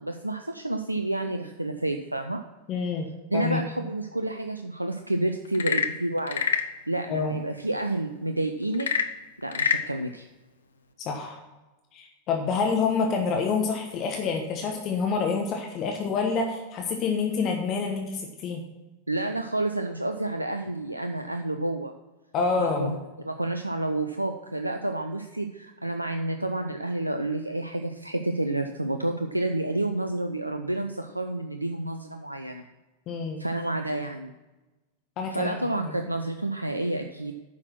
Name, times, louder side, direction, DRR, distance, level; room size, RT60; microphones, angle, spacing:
voice 1, 0.0-2.4 3.3-6.4 6.9-8.9 9.4-10.3 19.1-21.9 22.5-23.0 23.2-32.6 33.4-34.3 35.3-37.3, right 2 dB, 85° right, 6 dB, 0.5 m, -29 dB
voice 2, 2.7-3.1 3.3-3.6 7.1-7.4 11.0-11.4 11.9-18.6 22.3-22.9 33.1-33.4 35.2-35.5 35.8-36.0, left 5 dB, 35° left, 2 dB, 1.2 m, -27 dB
Frog / Percussion / Wood, 5.5-6.8 8.7-9.9, left 7 dB, 65° left, 0.7 m, -26 dB
9.6 x 6.3 x 6.0 m, 1.1 s
figure-of-eight pair, 90°, 0 cm